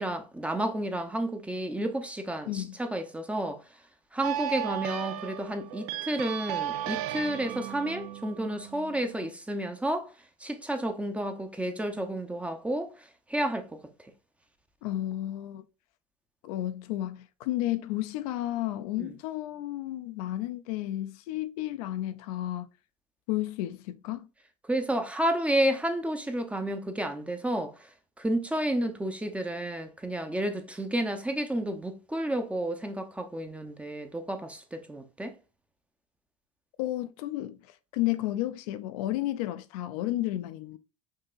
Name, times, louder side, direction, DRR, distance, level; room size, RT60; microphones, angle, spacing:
voice 1, 0.0-3.6 4.1-10.1 10.4-13.8 19.0-19.1 24.7-27.9 28.2-35.4, right 1 dB, 5° right, 0.6 m, -31 dB
voice 2, 2.5-2.8 14.8-15.6 16.4-22.7 23.3-24.3 36.8-40.8, left 14 dB, 70° left, 0.5 m, -32 dB
sound 1, 4.2-9.3, right 12 dB, 75° right, 0.5 m, -35 dB
5.5 x 2.8 x 2.4 m
supercardioid pair, 110°, 20 cm